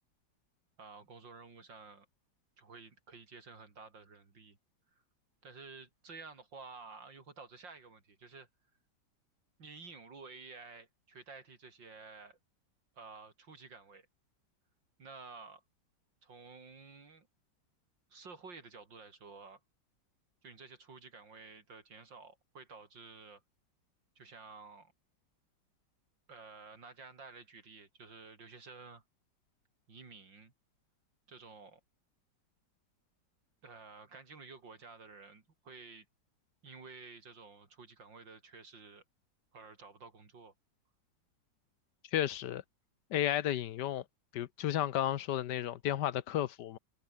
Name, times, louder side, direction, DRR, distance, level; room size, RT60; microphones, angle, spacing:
voice 1, 0.8-2.1 2.6-4.6 5.4-8.5 9.6-12.4 13.0-14.1 15.0-15.6 16.2-17.3 18.1-19.6 20.4-23.4 24.2-24.9 26.3-29.0 29.9-30.5 31.3-31.8 33.6-36.1 36.6-39.0 39.5-40.5, right 4 dB, 75° right, 4.1 m, -52 dB
voice 2, 42.1-42.6 43.1-44.0 44.3-46.8, left 11 dB, 70° left, 1.4 m, -33 dB
omnidirectional pair, 2.0 m